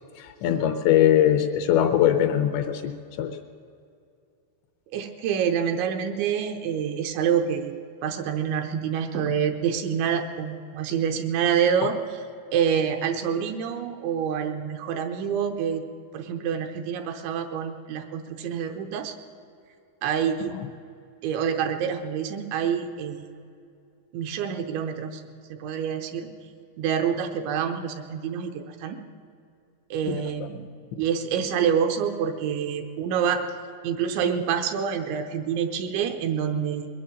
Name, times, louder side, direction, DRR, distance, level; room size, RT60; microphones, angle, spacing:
voice 1, 0.2-2.9 3.2-3.3 20.5-20.7 30.1-30.2, left 10 dB, 80° left, 8 dB, 2.7 m, -21 dB
voice 2, 4.9-12.2 12.5-15.8 16.1-19.2 20.0-20.5 21.2-23.2 24.1-25.2 25.5-26.3 26.8-29.0 29.9-30.7 31.0-33.4 33.8-36.9, right 7 dB, 80° right, 6 dB, 3.0 m, -27 dB
21.5 x 8.6 x 7.7 m, 2.5 s
omnidirectional pair, 5.6 m